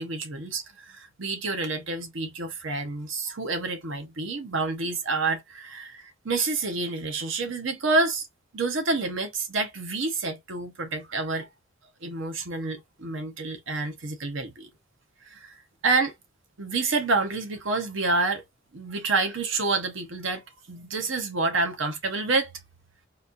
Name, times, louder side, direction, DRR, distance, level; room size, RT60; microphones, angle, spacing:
voice 1, 0.0-8.3 8.5-11.5 12.0-14.7 15.3-15.5 15.8-16.1 16.6-18.4 18.7-20.4 20.7-22.5, right 3 dB, 80° right, 1.0 m, -28 dB
4.1 x 2.7 x 2.5 m
head